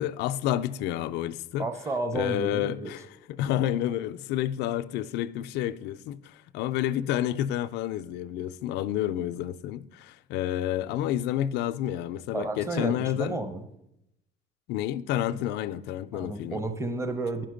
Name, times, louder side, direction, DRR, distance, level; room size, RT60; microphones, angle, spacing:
voice 1, 0.0-1.7 2.1-3.0 3.3-13.4 14.7-16.6, left 12 dB, 85° left, 0.4 m, -29 dB
voice 2, 1.6-2.9 12.3-13.6 15.3-15.4 16.1-17.5, right 2 dB, 15° right, 0.8 m, -31 dB
10.0 x 5.8 x 5.0 m
cardioid pair, 110°, 17 cm